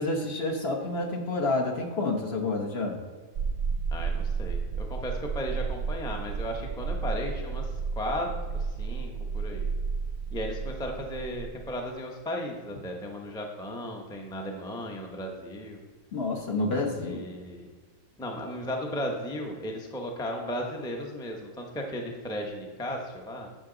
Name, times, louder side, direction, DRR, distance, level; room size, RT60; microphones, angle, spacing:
voice 1, 0.0-2.9 16.1-17.2, left 2 dB, 50° left, 1 dB, 1.3 m, -29 dB
sound 1, 3.3-11.9, right 5 dB, 75° right, 1.0 m, -32 dB
voice 2, 3.9-8.3 8.5-9.7 10.3-15.8 17.0-17.7 18.2-23.5, equal, 5° left, 1 dB, 0.7 m, -35 dB
10.0 x 6.9 x 3.9 m, 1.4 s
omnidirectional pair, 1.5 m